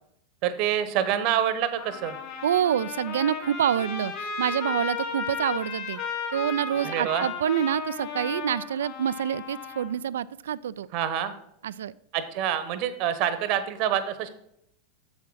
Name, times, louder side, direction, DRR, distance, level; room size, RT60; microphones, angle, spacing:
voice 1, 0.4-2.2 6.8-7.3 10.9-11.3 12.1-14.3, right 10 dB, 50° right, 12 dB, 1.0 m, -26 dB
Trumpet, 1.8-9.9, left 5 dB, 45° left, 2.6 m, -35 dB
voice 2, 2.4-6.0 6.3-10.9 11.6-11.9, right 9 dB, 70° right, 19 dB, 0.3 m, -27 dB
7.2 x 6.4 x 6.2 m, 0.75 s
figure-of-eight pair, 90°, 0 cm